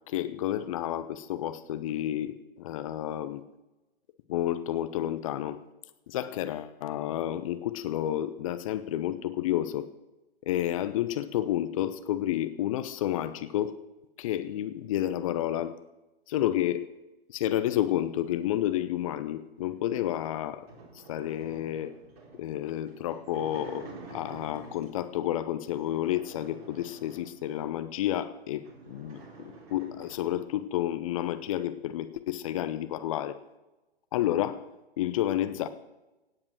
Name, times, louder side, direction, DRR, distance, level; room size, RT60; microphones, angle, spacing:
voice 1, 0.1-3.4 4.3-5.6 6.1-9.9 10.5-13.7 14.2-15.7 16.3-16.9 17.3-20.6 21.1-21.9 22.4-33.4 34.1-34.6 35.0-35.7, left 12 dB, 35° left, 12 dB, 0.9 m, -30 dB
Sliding Barn Door (several feet away), 20.0-25.1 25.7-27.7 28.2-28.3 28.5-30.4, right 4 dB, 40° right, 4.1 m, -49 dB
17.0 x 9.1 x 6.2 m, 1.0 s
figure-of-eight pair, 125°, 31 cm